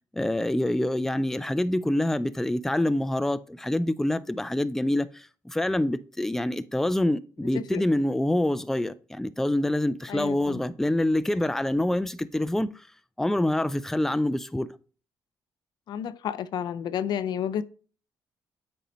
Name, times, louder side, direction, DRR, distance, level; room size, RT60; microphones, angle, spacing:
voice 1, 0.1-12.8 13.2-14.7, left 1 dB, 5° left, 0.4 m, -26 dB
voice 2, 10.1-10.6 15.9-17.6, left 9 dB, 70° left, 0.4 m, -31 dB
8.4 x 5.3 x 3.1 m
cardioid pair, 90°, 8 cm